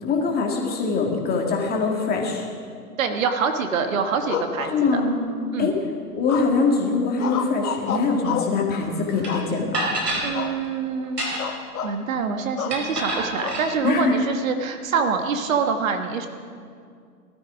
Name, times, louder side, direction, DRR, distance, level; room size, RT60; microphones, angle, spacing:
voice 1, 0.0-2.5 4.7-5.2 5.6-5.8 6.1-9.7 13.8-14.1, left 4 dB, 20° left, 1 dB, 2.2 m, -23 dB
voice 2, 3.0-5.0 5.5-5.7 10.2-11.3 11.8-16.3, right 5 dB, 55° right, 6 dB, 1.6 m, -25 dB
sound 1, 4.3-5.3 6.3-6.7 7.2-8.6 9.3-9.9 10.3-10.6 10.9-11.0 11.4-12.0 12.6-12.8 13.4-14.1, left 7 dB, 65° left, 1.5 m, -30 dB
sound 2, 9.2-9.3 9.7-10.3 11.0-11.6 12.7-13.7, right 1 dB, 85° right, 5.0 m, -27 dB
19.0 x 13.0 x 5.0 m, 2.2 s
hypercardioid pair, 125°, 47 cm